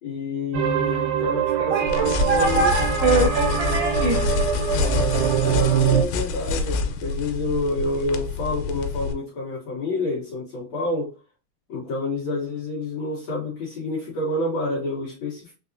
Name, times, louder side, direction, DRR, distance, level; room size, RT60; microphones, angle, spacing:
voice 1, 0.0-2.7 5.4-11.1 11.7-15.5, left 2 dB, 65° left, 1.9 m, -28 dB
sound 1, 0.5-6.0, right 10 dB, 90° right, 2.6 m, -24 dB
voice 2, 1.6-4.2, right 3 dB, 75° right, 1.4 m, -23 dB
sound 2, 1.9-9.1, left 4 dB, 90° left, 2.6 m, -26 dB
5.8 x 2.0 x 2.6 m
omnidirectional pair, 4.4 m